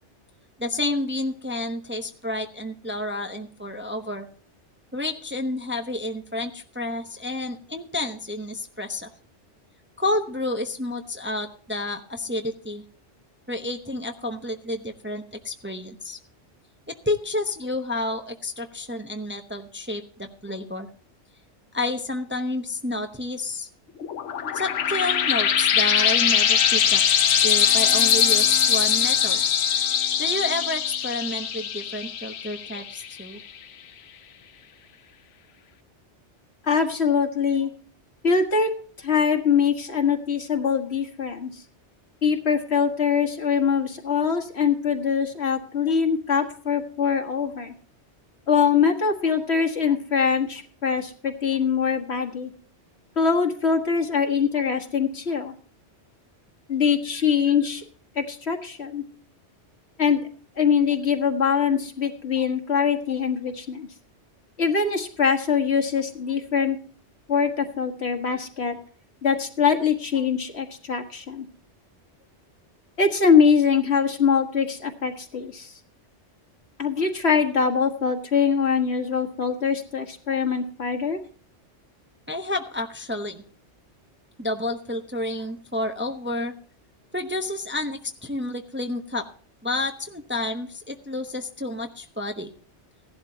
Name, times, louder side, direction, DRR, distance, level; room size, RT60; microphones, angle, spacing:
voice 1, 0.6-4.3 4.9-9.1 10.0-12.8 13.5-16.2 16.9-20.9 21.7-23.7 24.5-27.0 27.4-29.4 30.2-33.4 82.3-83.4 84.4-86.5 87.1-89.3 89.6-92.5, left 2 dB, 10° right, 5 dB, 0.8 m, -30 dB
sound 1, 24.0-33.2, left 8 dB, 85° left, 1.1 m, -22 dB
voice 2, 36.6-37.7 38.2-38.7 39.0-41.6 42.2-47.7 48.5-52.5 53.2-55.5 56.7-57.8 58.2-59.0 60.0-60.2 60.6-63.9 64.6-66.8 67.3-68.8 69.2-71.5 73.0-75.7 76.8-81.2, left 6 dB, 65° left, 5 dB, 1.8 m, -23 dB
16.5 x 11.5 x 2.8 m, 0.43 s
omnidirectional pair, 1.2 m